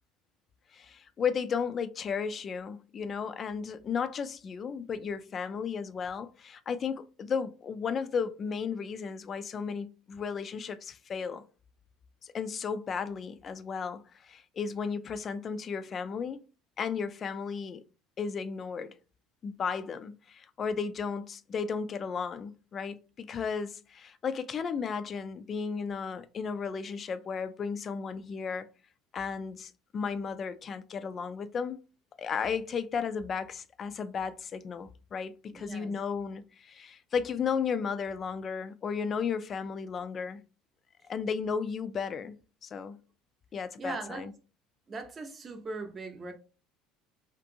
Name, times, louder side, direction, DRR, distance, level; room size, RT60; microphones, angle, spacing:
voice 1, 0.7-11.4 12.2-16.4 16.8-17.8 18.2-19.0 19.4-28.7 29.1-31.8 32.2-40.4 41.1-43.0 43.5-44.3, left 6 dB, 40° left, 0.3 m, -34 dB
voice 2, 35.5-35.9 43.8-44.3 44.9-46.3, right 3 dB, 30° right, 0.7 m, -39 dB
2.5 x 2.5 x 2.7 m
hypercardioid pair, 70°, 0 cm